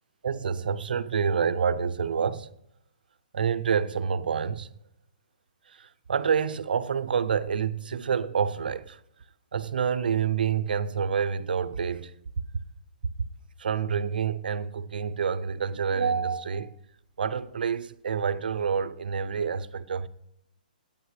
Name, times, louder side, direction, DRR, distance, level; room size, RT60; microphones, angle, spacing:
voice 1, 0.2-2.5 3.3-4.7 5.7-9.0 9.5-12.1 13.6-16.7 17.2-20.1, right 6 dB, 80° right, 0.7 m, -28 dB
17.5 x 9.0 x 3.3 m
hypercardioid pair, 155°, 5 cm